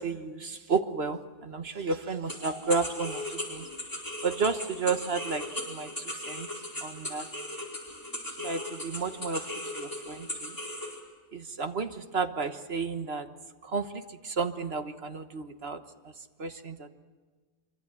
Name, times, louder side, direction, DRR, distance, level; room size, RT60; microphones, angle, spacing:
voice 1, 0.0-3.7 4.2-6.5 6.8-7.3 8.4-10.6 11.3-13.3 13.6-16.1 16.4-16.9, right 4 dB, 45° right, 9 dB, 1.3 m, -32 dB
sound 1, 2.3-11.0, left 1 dB, 10° left, 4.4 m, -38 dB
25.5 x 24.5 x 7.8 m, 1.4 s
omnidirectional pair, 1.6 m